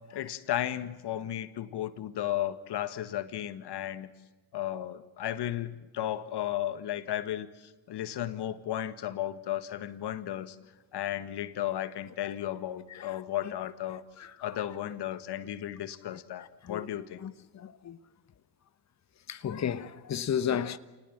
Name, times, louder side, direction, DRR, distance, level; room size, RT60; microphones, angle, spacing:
voice 1, 0.1-4.1 4.5-10.6 10.9-14.0 14.4-17.2, left 12 dB, 55° left, 1.8 m, -34 dB
voice 2, 14.2-14.6 16.1-16.9 17.2-18.0 19.3-20.8, left 8 dB, 35° left, 1.2 m, -34 dB
28.0 x 19.5 x 7.7 m
hypercardioid pair, 70°, 49 cm